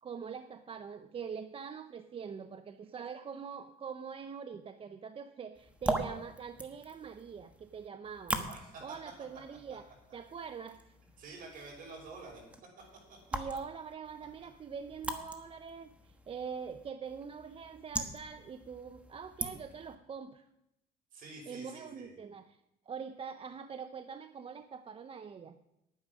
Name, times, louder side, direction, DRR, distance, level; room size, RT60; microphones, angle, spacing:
voice 1, 0.0-8.5 8.8-11.0 13.3-20.5 21.5-22.6 22.9-25.6, right 6 dB, 35° right, 9 dB, 0.6 m, -44 dB
sound 1, 5.5-19.9, right 1 dB, 5° right, 1.3 m, -42 dB
voice 2, 8.5-9.0 11.2-12.4 13.1-13.2 21.1-22.2, right 3 dB, 55° right, -1 dB, 5.8 m, -48 dB
10.5 x 9.4 x 6.1 m, 0.87 s
cardioid pair, 110°, 17 cm